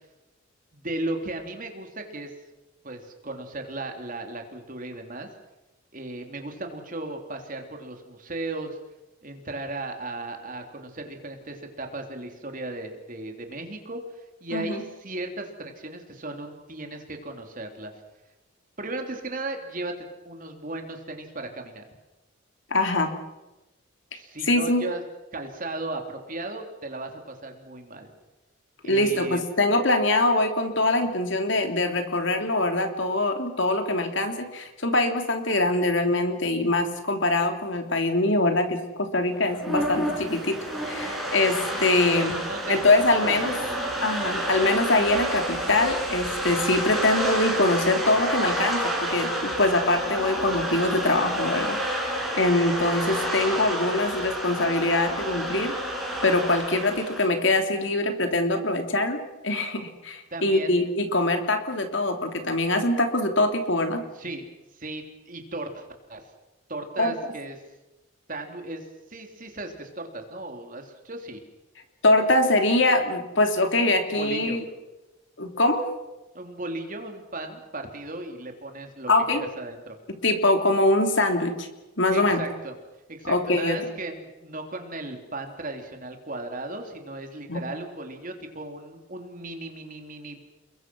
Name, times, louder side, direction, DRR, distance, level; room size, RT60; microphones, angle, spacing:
voice 1, 0.7-2.3 2.8-5.3 5.9-8.8 9.2-17.9 18.8-19.9 20.2-21.8 24.1-25.0 25.3-28.1 28.8-29.4 31.0-31.1 42.1-43.3 43.6-43.7 60.3-60.8 64.1-64.4 64.7-66.2 66.7-67.6 68.3-68.8 69.1-71.4 74.2-74.6 76.3-79.1 79.4-80.0 82.1-82.7 83.1-90.4, right 2 dB, 40° right, 4 dB, 3.4 m, -36 dB
voice 2, 14.5-14.8 22.7-23.2 24.5-24.8 28.8-40.6 40.8-42.4 42.7-43.6 44.0-55.7 56.2-64.0 67.0-67.1 72.0-74.6 75.4-75.9 79.1-79.4 80.2-81.7 82.0-82.4 83.2-83.8 87.5-87.6, left 2 dB, 60° left, 5 dB, 3.2 m, -23 dB
Flies swarm, 39.4-57.3, equal, ahead, 6.4 m, -29 dB
30.0 x 22.0 x 6.3 m, 1.0 s
head